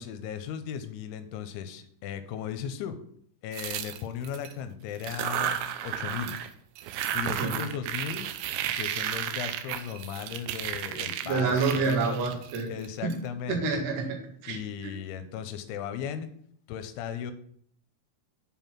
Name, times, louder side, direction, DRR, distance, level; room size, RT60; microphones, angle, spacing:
voice 1, 0.0-3.0 3.4-6.4 7.1-8.3 8.8-12.2 12.7-13.8 14.5-16.3 16.7-17.3, left 8 dB, 80° left, 9 dB, 3.1 m, -36 dB
sound 1, 3.5-4.5 5.0-6.5 6.8-13.1, right 10 dB, 80° right, 2.5 m, -33 dB
voice 2, 10.9-12.7 13.0-13.2 13.5-14.6 14.8-14.9, right 4 dB, 55° right, 0 dB, 2.6 m, -28 dB
7.7 x 5.5 x 5.8 m, 0.63 s
omnidirectional pair, 5.5 m